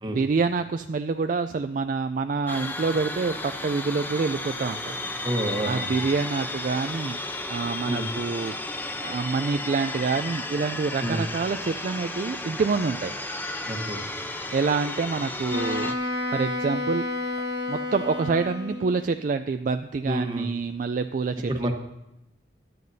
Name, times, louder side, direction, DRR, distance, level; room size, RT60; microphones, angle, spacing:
voice 1, 0.1-5.0 5.6-7.2 7.5-8.6 9.0-13.1 14.5-16.0 16.3-17.1 17.7-21.7, right 4 dB, 50° right, 8 dB, 0.3 m, -27 dB
sound 1, 2.5-15.9, left 2 dB, 10° left, 0.7 m, -33 dB
voice 2, 5.2-5.9 7.8-8.1 11.0-11.2 13.7-14.0 20.0-20.5 21.5-21.7, right 1 dB, 25° right, 4 dB, 1.1 m, -28 dB
Wind instrument woodwind instrument, 15.5-19.0, left 2 dB, 65° right, 1.2 m, -30 dB
17.0 x 11.0 x 2.7 m, 0.88 s
head